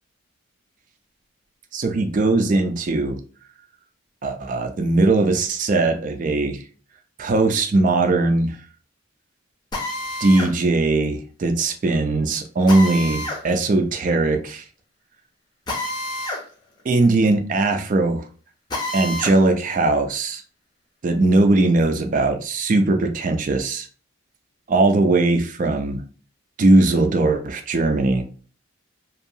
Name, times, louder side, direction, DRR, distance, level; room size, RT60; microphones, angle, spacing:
voice 1, 1.7-3.2 4.2-6.6 7.2-8.6 10.2-14.6 16.8-18.2 18.9-20.4 21.0-23.9 24.7-26.0 26.6-28.2, right 2 dB, 40° right, 5 dB, 0.3 m, -19 dB
Drill, 9.7-10.5 12.7-13.4 15.7-16.4 16.8-16.9 18.7-19.4, left 1 dB, 20° left, 0.6 m, -28 dB
2.6 x 2.3 x 2.7 m, 0.40 s
head